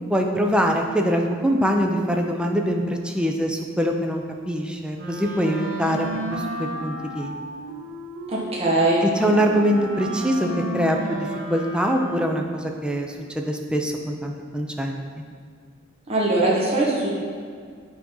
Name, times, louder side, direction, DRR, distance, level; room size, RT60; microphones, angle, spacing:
voice 1, 0.1-7.3 9.0-10.5 10.7-14.9, equal, 5° right, 2 dB, 0.6 m, -23 dB
Wind instrument woodwind instrument, 5.0-12.4, right 1 dB, 80° right, 1.7 m, -33 dB
voice 2, 8.3-9.1 16.1-17.1, right 2 dB, 30° right, -5 dB, 1.3 m, -21 dB
8.7 x 3.7 x 5.4 m, 2.1 s
head